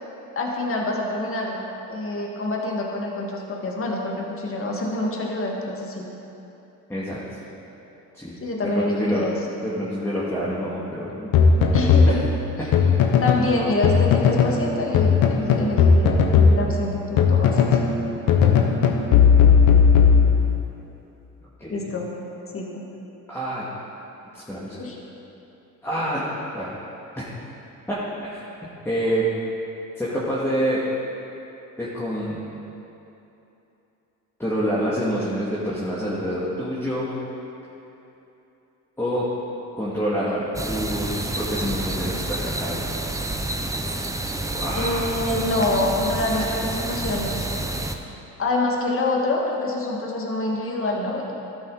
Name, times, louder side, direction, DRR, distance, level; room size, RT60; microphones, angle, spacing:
voice 1, 0.4-1.6 1.9-6.1 8.4-9.4 11.7-12.2 13.2-17.8 21.7-22.1 22.5-22.8 24.8-25.0 44.7-47.5 48.4-51.3, left 2 dB, 35° left, -1 dB, 1.9 m, -26 dB
voice 2, 8.7-9.3 9.6-11.3 12.1-12.2 21.6-21.9 23.3-23.7 24.3-24.9 25.8-26.2 26.5-26.7 27.1-27.3 27.9-28.0 28.2-28.4 28.8-29.3 30.0-30.8 31.8-32.4 34.4-37.1 39.0-39.2 39.7-42.8 44.5-45.2 46.3-46.5, equal, 5° left, -8 dB, 2.2 m, -27 dB
sound 1, 11.3-13.5 13.8-14.6 14.9-17.9 18.3-20.7, left 6 dB, 70° left, 1.1 m, -17 dB
sound 2, 40.6-48.0, right 2 dB, 10° right, 0.7 m, -29 dB
12.5 x 8.2 x 4.1 m, 2.9 s
supercardioid pair, 70°, 36 cm